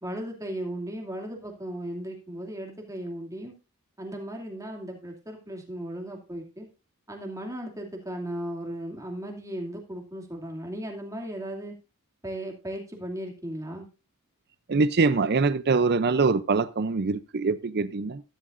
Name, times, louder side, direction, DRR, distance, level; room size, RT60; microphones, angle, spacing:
voice 1, 0.0-3.5 4.0-6.7 7.1-11.8 12.2-13.9, right 1 dB, 15° right, 2 dB, 2.5 m, -36 dB
voice 2, 14.7-18.2, right 4 dB, 50° right, 14 dB, 0.6 m, -24 dB
13.5 x 12.5 x 2.6 m, 0.30 s
head